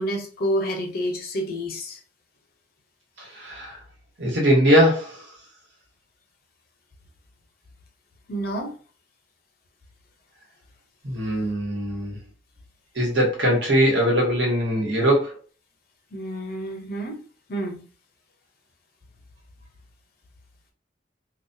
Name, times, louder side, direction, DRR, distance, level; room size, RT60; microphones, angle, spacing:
voice 1, 0.0-2.0 8.3-8.7 16.1-17.2 17.5-17.8, equal, 55° left, 0.7 m, -28 dB
voice 2, 3.2-3.7 4.2-5.2 11.0-12.2 12.9-15.3, equal, 75° right, 1.1 m, -21 dB
2.3 x 2.2 x 2.6 m
head